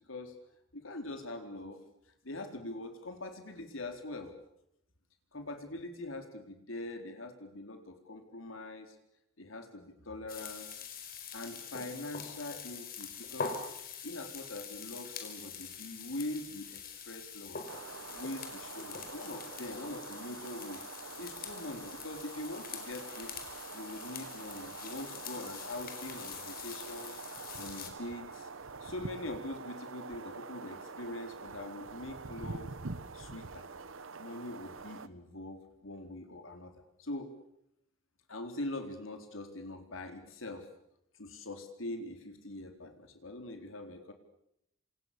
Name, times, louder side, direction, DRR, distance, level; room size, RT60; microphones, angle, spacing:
voice 1, 0.7-1.8 2.2-4.3 5.3-8.9 9.4-10.9 11.3-13.6 14.0-17.6 18.1-20.8 21.2-23.3 23.7-27.2 27.6-28.5 28.8-32.7 33.1-33.7 34.2-36.7 37.0-37.3 38.3-40.7 41.2-44.1, left 2 dB, 85° left, 6 dB, 4.1 m, -43 dB
sound 1, 10.3-27.9, left 6 dB, 50° left, 4.7 m, -44 dB
sound 2, 17.7-35.1, right 4 dB, 80° right, 1.1 m, -46 dB
28.5 x 27.0 x 7.0 m, 0.78 s
head